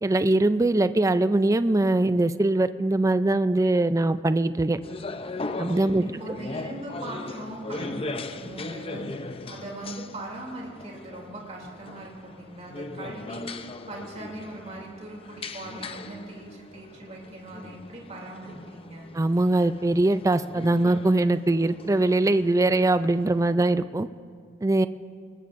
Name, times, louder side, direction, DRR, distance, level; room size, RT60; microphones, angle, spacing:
voice 1, 0.0-4.8 5.6-6.1 19.1-24.1 24.6-24.9, right 2 dB, 15° right, 12 dB, 0.4 m, -22 dB
sound 1, 4.8-23.5, left 2 dB, 30° left, 0.6 m, -39 dB
voice 2, 6.0-19.1, right 1 dB, 35° right, -2 dB, 2.9 m, -40 dB
25.5 x 20.5 x 2.6 m, 2.4 s
head